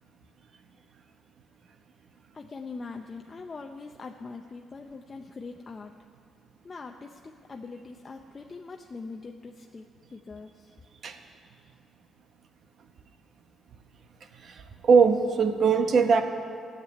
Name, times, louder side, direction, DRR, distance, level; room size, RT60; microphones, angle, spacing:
voice 1, 2.3-5.9 6.6-9.9 10.1-10.7, left 4 dB, 35° left, 3 dB, 0.6 m, -42 dB
voice 2, 14.9-16.2, right 5 dB, 55° right, 7 dB, 1.1 m, -20 dB
12.5 x 7.5 x 9.5 m, 2.4 s
cardioid pair, 90°, 0 cm